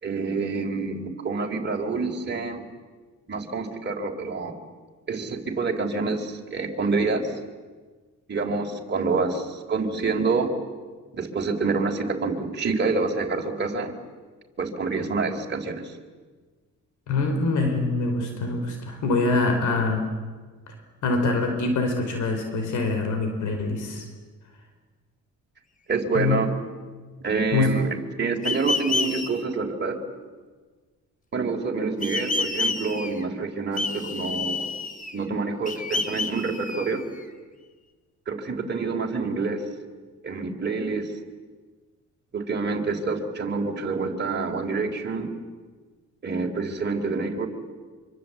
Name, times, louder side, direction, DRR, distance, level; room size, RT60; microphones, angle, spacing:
voice 1, 0.0-2.6 3.3-4.6 5.1-7.3 8.3-10.5 11.1-14.0 14.6-15.9 25.9-26.5 27.2-30.0 31.3-34.7 35.1-37.0 38.3-39.7 40.2-41.1 42.3-45.3 46.2-47.5, right 4 dB, 35° right, 1 dB, 3.9 m, -27 dB
voice 2, 17.1-20.0 20.7-20.8 21.0-24.0 26.1-26.4 27.5-27.7, left 3 dB, 75° left, 5 dB, 4.9 m, -24 dB
sound 1, 28.4-29.3 32.0-33.2 33.8-35.2 35.7-37.2, left 3 dB, 25° left, 2.6 m, -29 dB
25.5 x 24.5 x 8.5 m, 1.4 s
cardioid pair, 90°, 30 cm